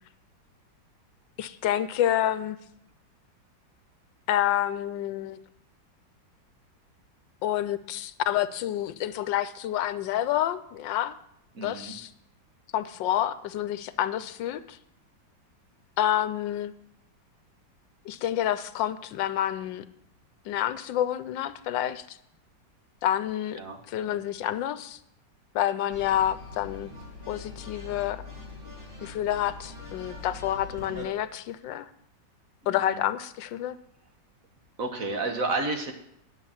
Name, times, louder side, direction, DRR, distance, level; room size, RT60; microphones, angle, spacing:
voice 1, 1.4-2.6 4.3-5.4 7.4-11.2 11.6-12.1 12.7-14.8 16.0-16.7 18.1-19.8 20.5-22.2 23.0-23.6 23.9-25.0 25.5-26.9 27.3-28.2 29.0-31.9 32.7-33.8, left 12 dB, 80° left, 15 dB, 1.4 m, -28 dB
voice 2, 11.5-11.9 23.5-23.8 24.1-24.2 32.6-33.0 34.8-35.9, right 3 dB, 50° right, 5 dB, 1.7 m, -31 dB
sound 1, 25.9-31.0, left 3 dB, 30° right, 3.3 m, -43 dB
10.5 x 7.0 x 7.3 m, 0.76 s
omnidirectional pair, 2.0 m